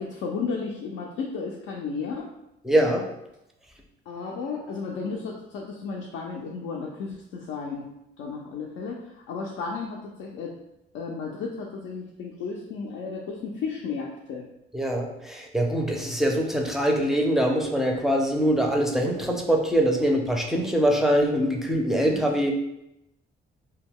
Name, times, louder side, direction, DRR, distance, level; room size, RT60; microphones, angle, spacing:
voice 1, 0.0-2.3 4.1-7.9 8.2-10.5 10.9-14.4 22.1-22.2, left 4 dB, 80° left, -2 dB, 0.4 m, -33 dB
voice 2, 2.6-3.1 14.7-22.5, equal, ahead, 1 dB, 0.4 m, -23 dB
2.2 x 2.1 x 3.5 m, 0.85 s
cardioid pair, 90°, 20 cm